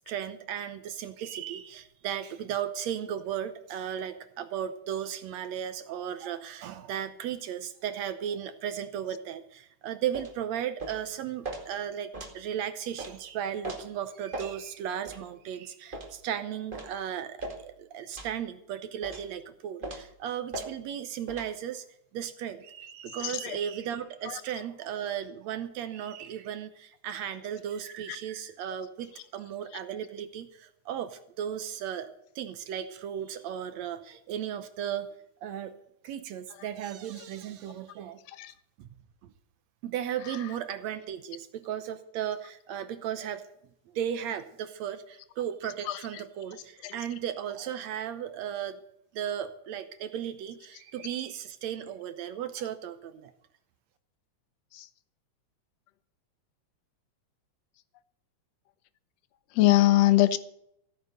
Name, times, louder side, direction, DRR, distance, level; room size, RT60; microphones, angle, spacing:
voice 1, 0.1-21.9 22.1-32.1 32.4-35.2 35.4-35.8 36.0-38.2 38.8-38.9 39.2-39.3 39.8-43.4 43.9-48.8 49.1-53.3, right 9 dB, 70° right, 2.0 m, -35 dB
sound 1, 10.1-10.3 10.8-11.0 11.4-11.6 12.1-12.4 13.0-13.1 13.6-13.8 14.3-14.5 15.1-15.2 15.9-16.1 16.7-16.9 17.4-17.6 18.2-18.4 19.0-19.3 19.8-20.1 20.5-20.7 21.3-21.5, right 2 dB, 20° right, 1.9 m, -38 dB
voice 2, 23.2-23.6 24.3-24.4 38.4-38.5 45.9-46.0 46.8-46.9 54.8-54.9 59.6-60.4, left 15 dB, 70° left, 1.8 m, -22 dB
15.5 x 9.4 x 6.6 m
omnidirectional pair, 3.4 m